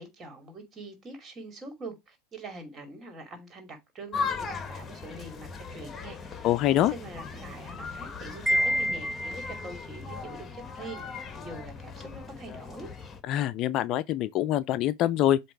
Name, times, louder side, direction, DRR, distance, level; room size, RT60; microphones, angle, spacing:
voice 1, 0.0-12.9, right 2 dB, 30° right, 2.5 m, -44 dB
sound 1, 4.1-13.2, left 5 dB, 25° left, 1.3 m, -38 dB
voice 2, 6.4-6.9 13.3-15.4, left 12 dB, 45° left, 0.4 m, -25 dB
Wind chime, 8.5-9.8, equal, 10° right, 0.5 m, -28 dB
7.5 x 2.9 x 4.5 m
hypercardioid pair, 90°, 0 cm